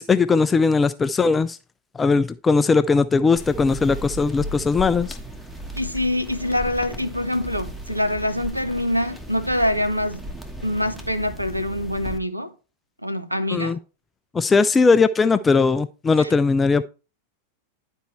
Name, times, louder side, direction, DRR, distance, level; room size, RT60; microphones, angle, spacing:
voice 1, 0.0-1.6 2.0-5.2 13.5-13.8 14.3-16.8, left 4 dB, 15° left, 0.3 m, -19 dB
sound 1, 3.4-12.2, equal, 5° right, 1.3 m, -36 dB
voice 2, 5.8-10.2 10.6-12.5 13.0-13.8 16.2-16.3, left 1 dB, 90° right, 0.8 m, -25 dB
11.0 x 4.4 x 3.2 m
figure-of-eight pair, 90°, 0 cm